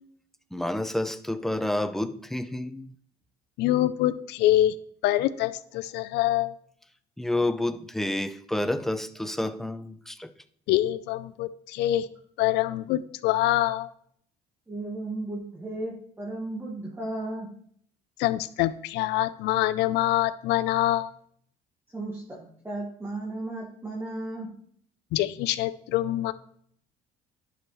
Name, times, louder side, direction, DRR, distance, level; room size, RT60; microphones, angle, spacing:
voice 1, 0.5-2.9 7.2-10.3, left 1 dB, ahead, 0.5 m, -29 dB
voice 2, 3.6-4.7 5.0-6.5 10.7-12.0 12.4-13.9 18.2-21.1 25.1-26.3, left 14 dB, 85° left, 0.5 m, -25 dB
voice 3, 14.7-17.5 21.9-24.5, right 2 dB, 15° right, 1.7 m, -35 dB
11.0 x 4.9 x 3.1 m
cardioid pair, 110°, 17 cm